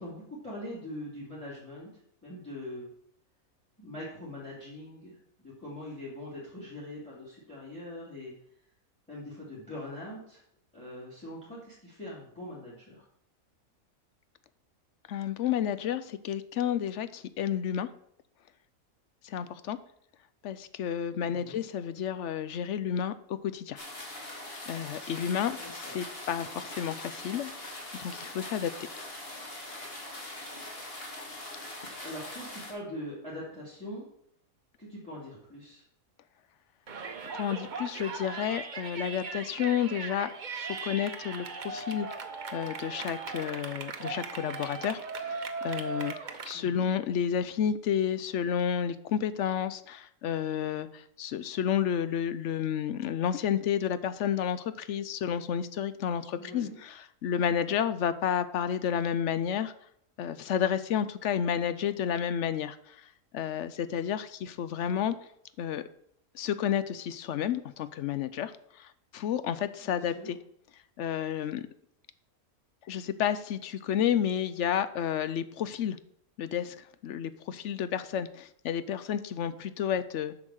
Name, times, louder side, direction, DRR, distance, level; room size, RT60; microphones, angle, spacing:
voice 1, 0.0-1.9 2.2-2.9 3.8-5.1 5.4-8.3 9.1-10.4 10.7-13.0 21.2-21.6 25.6-26.0 32.0-34.1 34.8-35.8 46.5-46.9 56.4-56.8 64.9-65.1 69.8-70.3, left 1 dB, 5° left, -6 dB, 3.0 m, -42 dB
voice 2, 15.1-17.9 19.2-19.8 20.4-23.8 24.7-27.5 27.9-28.7 37.3-40.3 40.6-42.1 42.5-46.1 46.4-59.7 60.2-65.2 65.6-65.8 66.3-70.4 71.0-71.7 72.9-76.0 76.4-80.3, left 9 dB, 65° left, 13 dB, 0.8 m, -31 dB
sound 1, 23.8-32.7, left 1 dB, 40° left, 2.1 m, -42 dB
Yell, 36.9-46.5, right 4 dB, 40° right, 0.8 m, -38 dB
7.8 x 6.1 x 6.4 m, 0.70 s
omnidirectional pair, 1.5 m